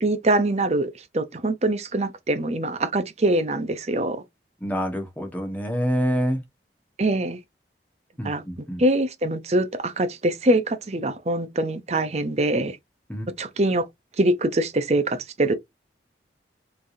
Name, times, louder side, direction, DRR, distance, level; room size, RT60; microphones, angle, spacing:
voice 1, 0.0-4.2 7.0-7.4 8.2-8.4 8.8-12.8 13.4-13.9 14.2-15.5, right 1 dB, 35° right, 0.6 m, -23 dB
voice 2, 4.6-6.4 8.2-8.8 13.1-13.3, equal, 10° left, 1.3 m, -26 dB
5.6 x 3.4 x 2.6 m
head